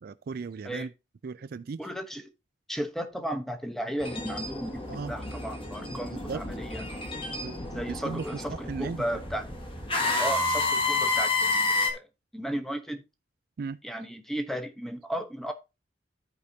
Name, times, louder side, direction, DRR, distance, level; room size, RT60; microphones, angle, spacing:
voice 1, 0.0-0.9 1.2-1.8 4.9-5.1 6.3-6.4 7.3-8.2 8.7-9.0 13.6-13.8, right 5 dB, 55° right, 0.4 m, -36 dB
voice 2, 1.8-2.3 2.7-6.9 7.7-9.5 10.2-12.1 12.3-13.0 13.8-15.5, equal, ahead, 0.9 m, -35 dB
sound 1, 4.0-11.9, left 3 dB, 30° left, 1.5 m, -30 dB
14.5 x 4.8 x 2.7 m
head